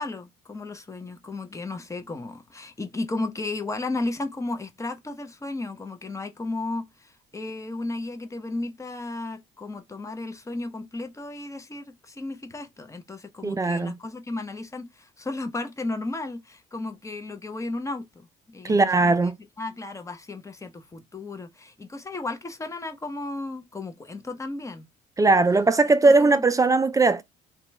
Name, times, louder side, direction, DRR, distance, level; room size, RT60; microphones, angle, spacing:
voice 1, 0.0-19.3 19.6-24.9 26.0-26.4, left 2 dB, 15° left, 0.7 m, -34 dB
voice 2, 13.4-13.9 18.6-19.3 25.2-27.2, right 3 dB, 20° right, 0.4 m, -19 dB
2.9 x 2.3 x 4.1 m
supercardioid pair, 80°, 17 cm